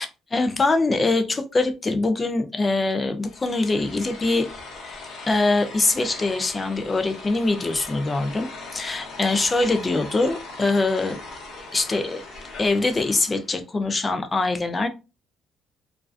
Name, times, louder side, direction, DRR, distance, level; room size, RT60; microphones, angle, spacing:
voice 1, 0.0-4.5 4.8-5.0 5.3-8.5 8.7-11.2 11.7-12.2 12.6-14.9, left 3 dB, 25° left, 7 dB, 0.4 m, -23 dB
sound 1, 3.2-13.6, left 3 dB, 70° left, 0.8 m, -40 dB
2.4 x 2.2 x 2.3 m, 0.29 s
cardioid pair, 105°, 0 cm